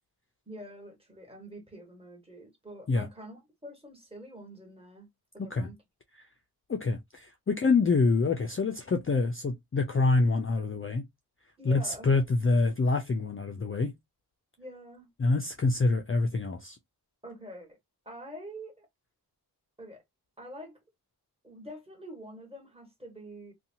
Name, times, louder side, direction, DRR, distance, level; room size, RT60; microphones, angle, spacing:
voice 1, 0.5-5.1 5.3-5.8 11.6-12.1 14.6-15.1 17.2-17.8 18.0-18.9 19.8-20.0 20.4-20.8 21.4-23.5, equal, 15° right, 1.4 m, -46 dB
voice 2, 6.7-11.1 11.6-13.9 15.2-16.8, left 3 dB, 35° left, 0.4 m, -26 dB
2.7 x 2.2 x 2.7 m
wide cardioid pair, 75°, 40 cm